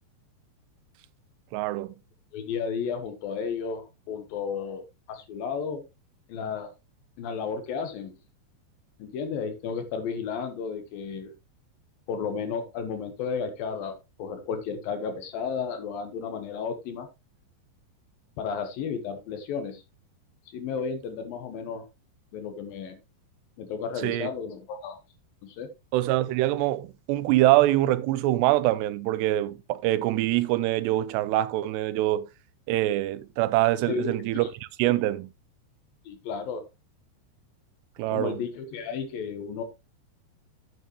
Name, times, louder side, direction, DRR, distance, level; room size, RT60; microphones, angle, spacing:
voice 1, 1.5-1.9 24.0-24.3 25.9-32.3 32.7-34.5 34.8-35.3 38.0-38.4, right 15 dB, 85° right, 2.8 m, -24 dB
voice 2, 2.3-4.8 5.1-5.8 6.3-6.7 7.2-8.1 9.0-11.3 12.1-17.1 18.4-19.8 20.5-21.8 22.3-23.0 23.6-25.0 25.4-25.7 33.9-34.5 36.1-36.6 38.1-39.6, left 6 dB, 65° left, 2.7 m, -33 dB
9.3 x 8.8 x 3.0 m
omnidirectional pair, 4.8 m